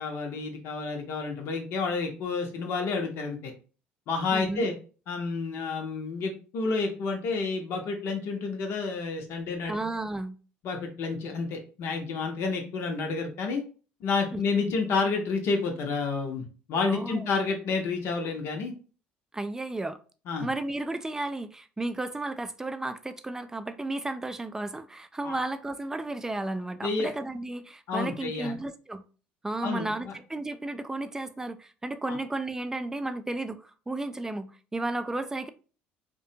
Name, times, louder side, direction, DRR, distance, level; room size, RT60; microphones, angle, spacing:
voice 1, 0.0-3.5 4.1-4.7 5.1-9.8 10.6-13.6 14.0-18.7 20.3-20.5 25.2-25.4 26.8-27.1 27.9-28.6 29.6-30.1 32.1-32.2, left 4 dB, 65° left, 0.7 m, -30 dB
voice 2, 4.3-4.7 9.7-10.4 14.3-14.4 14.7-14.8 16.8-17.3 19.3-20.0 20.4-29.0 29.4-35.5, right 2 dB, 10° right, 0.3 m, -33 dB
2.4 x 2.1 x 2.8 m
hypercardioid pair, 70°, 5 cm